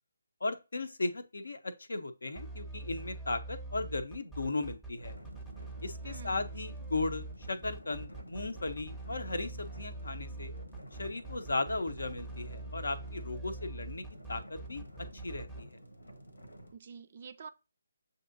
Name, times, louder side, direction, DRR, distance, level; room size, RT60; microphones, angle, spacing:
voice 1, 0.4-5.1 5.8-10.5 11.0-14.9 15.1-15.8, left 2 dB, 65° left, 0.6 m, -36 dB
sound 1, 2.4-15.6, right 2 dB, 5° left, 0.6 m, -43 dB
sound 2, 5.0-16.8, equal, 85° left, 1.0 m, -51 dB
voice 2, 6.0-6.5 16.7-17.5, right 6 dB, 40° right, 0.4 m, -48 dB
7.4 x 2.7 x 2.6 m
figure-of-eight pair, 145°, 0 cm